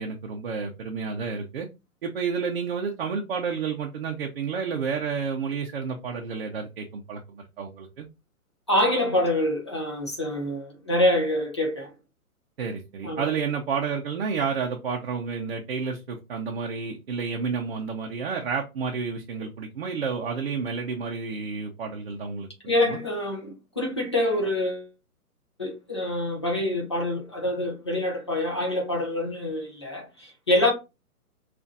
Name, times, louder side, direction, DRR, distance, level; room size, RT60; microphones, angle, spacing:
voice 1, 0.0-1.7 2.0-8.1 12.6-23.0, right 5 dB, 40° right, 0.6 m, -30 dB
voice 2, 8.7-11.9 13.0-13.3 22.7-24.9 25.6-30.7, left 1 dB, 20° left, 0.4 m, -26 dB
5.3 x 2.5 x 2.4 m
hypercardioid pair, 160°, 45 cm